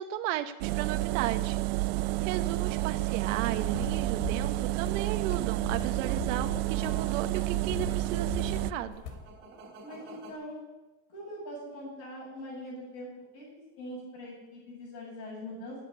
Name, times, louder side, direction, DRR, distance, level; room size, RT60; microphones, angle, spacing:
voice 1, 0.0-1.6 2.2-9.0, right 12 dB, 85° right, 8 dB, 1.1 m, -35 dB
sound 1, 0.6-8.7, right 19 dB, 55° right, 0.5 m, -30 dB
sound 2, 1.9-10.3, right 3 dB, 30° right, 3.5 m, -51 dB
sound 3, 3.4-9.3, left 6 dB, 85° left, 3.4 m, -41 dB
voice 2, 9.8-10.6 11.1-13.5 13.8-15.8, equal, 40° left, -6 dB, 7.2 m, -42 dB
17.5 x 8.2 x 9.6 m, 1.1 s
cardioid pair, 175°, 37 cm